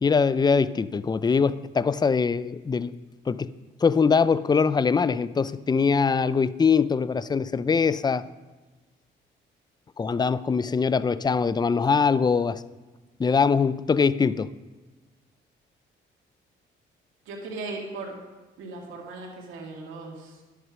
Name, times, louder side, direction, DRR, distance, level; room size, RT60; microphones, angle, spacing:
voice 1, 0.0-2.9 3.3-3.5 3.8-8.2 10.0-12.6 13.2-14.5, left 5 dB, 20° left, 16 dB, 0.4 m, -22 dB
voice 2, 17.3-18.2 18.6-20.4, right 3 dB, 85° right, -1 dB, 2.1 m, -37 dB
10.5 x 8.1 x 6.3 m, 1.2 s
cardioid pair, 90°, 20 cm